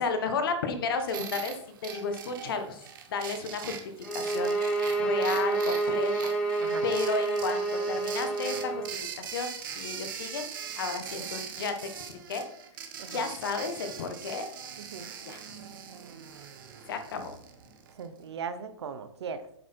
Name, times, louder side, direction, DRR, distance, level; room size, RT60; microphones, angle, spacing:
voice 1, 0.0-3.8 4.1-6.3 6.8-8.8 9.2-10.5 10.7-12.5 13.1-14.5 15.3-15.6 16.9-17.4, left 4 dB, 50° left, 8 dB, 1.5 m, -33 dB
sound 1, 1.1-18.1, right 8 dB, 45° right, 1.5 m, -42 dB
sound 2, 4.0-8.9, right 3 dB, 5° left, 0.8 m, -29 dB
voice 2, 14.8-15.1 18.0-19.4, right 6 dB, 60° right, 11 dB, 1.0 m, -38 dB
8.4 x 7.2 x 4.5 m, 0.70 s
hypercardioid pair, 165°, 15 cm